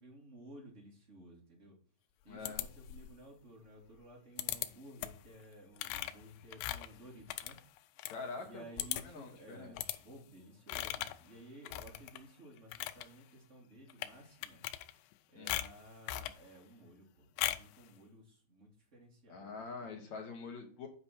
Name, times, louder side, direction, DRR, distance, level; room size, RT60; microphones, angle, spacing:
voice 1, 0.0-1.8 2.2-7.6 8.4-14.6 15.3-19.5 19.8-19.9, right 1 dB, 20° right, -2 dB, 2.3 m, -55 dB
voice 2, 2.3-2.6 8.1-8.6 9.0-9.7 15.4-15.5 19.3-20.9, left 4 dB, 60° left, 2 dB, 2.0 m, -45 dB
sound 1, 2.5-3.2 4.4-4.7 5.0-5.3 5.8-8.2 8.5-8.6 8.8-9.2 9.8-10.0 10.7-11.2 11.7-12.2 12.6-13.1 13.9-14.1 14.4-15.1 15.5-16.4 17.4-17.7, left 14 dB, 85° left, 2.8 m, -38 dB
8.7 x 5.2 x 4.3 m, 0.44 s
omnidirectional pair, 4.9 m